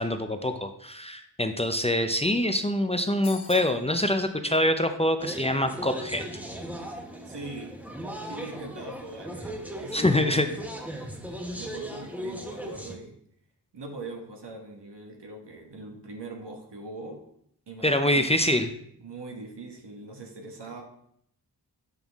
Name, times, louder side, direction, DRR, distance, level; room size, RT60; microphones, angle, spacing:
voice 1, 0.0-6.2 9.9-10.5 17.8-18.7, left 1 dB, 15° left, 7 dB, 0.5 m, -25 dB
sound 1, 3.2-3.8, left 5 dB, 80° left, 1.1 m, -42 dB
sound 2, 5.2-12.9, right 1 dB, 5° right, 0.9 m, -38 dB
voice 2, 7.2-7.7 8.3-10.6 11.5-13.1 13.7-17.2 17.7-18.3 19.0-20.8, right 2 dB, 80° right, 2 dB, 1.5 m, -41 dB
7.2 x 5.5 x 3.5 m, 0.70 s
wide cardioid pair, 80°, 41 cm